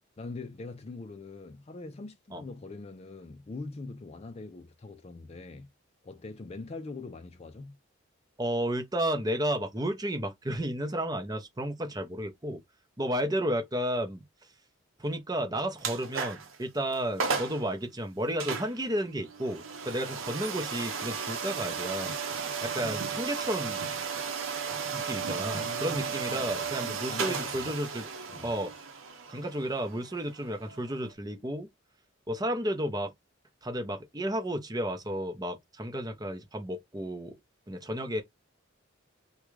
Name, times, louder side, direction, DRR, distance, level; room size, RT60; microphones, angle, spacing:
voice 1, 0.2-5.7 6.0-7.8 25.4-27.8 28.3-28.5, left 3 dB, 30° left, 0.4 m, -43 dB
voice 2, 8.4-12.6 13.0-14.2 15.0-22.1 22.6-23.8 24.9-28.1 28.4-28.7 29.3-31.7 32.3-33.1 33.6-37.3 37.7-38.2, right 1 dB, 20° right, 0.6 m, -32 dB
sound 1, 15.8-16.6 16.9-17.0 17.2-17.6 18.4-31.1, right 6 dB, 90° right, 0.8 m, -35 dB
3.6 x 2.3 x 3.1 m
head